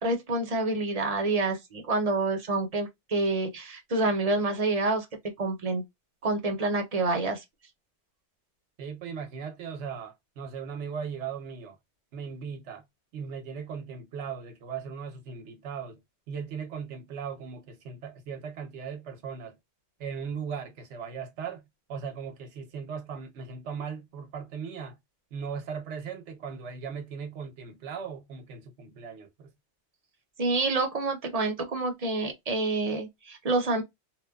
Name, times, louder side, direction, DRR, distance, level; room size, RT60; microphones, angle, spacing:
voice 1, 0.0-5.1 5.4-5.8 6.2-7.4 30.4-33.8, right 2 dB, 40° right, 0.7 m, -27 dB
voice 2, 8.8-11.8 12.1-12.8 13.1-16.0 16.3-19.6 20.0-21.6 21.9-25.0 25.3-29.5, right 6 dB, 85° right, 1.0 m, -38 dB
2.9 x 2.1 x 2.2 m
omnidirectional pair, 1.2 m